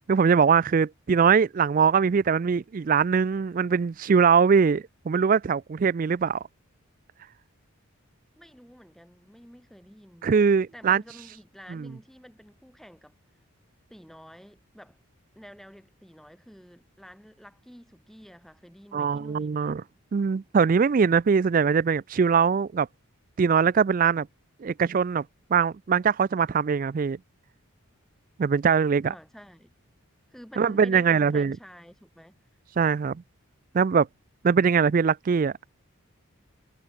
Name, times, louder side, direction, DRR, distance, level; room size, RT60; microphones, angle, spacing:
voice 1, 0.1-6.4 10.2-11.0 11.7-11.9 18.9-19.8 20.1-22.9 23.4-24.3 24.6-25.2 25.5-27.2 28.4-29.1 30.6-31.6 32.8-33.2 33.7-34.1 34.4-35.5, right 6 dB, 40° right, 0.3 m, -22 dB
voice 2, 8.4-10.3 10.7-13.1 13.9-15.0 15.3-19.7 29.1-29.7 30.3-32.4, equal, ahead, 2.4 m, -49 dB
head